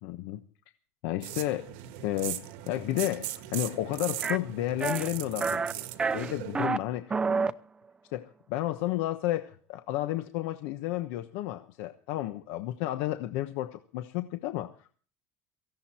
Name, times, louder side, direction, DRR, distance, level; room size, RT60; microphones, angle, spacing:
voice 1, 0.0-0.4 1.0-1.7 2.0-5.8 6.1-7.2 8.1-14.7, left 14 dB, 80° left, 8 dB, 1.1 m, -32 dB
sound 1, 1.2-6.7, right 14 dB, 80° right, 1.5 m, -39 dB
sound 2, 4.2-4.4 4.8-5.1 5.4-5.7 6.0-6.8 7.1-7.5, right 4 dB, 15° right, 0.7 m, -28 dB
17.5 x 15.5 x 4.4 m, 0.43 s
cardioid pair, 140°, 6 cm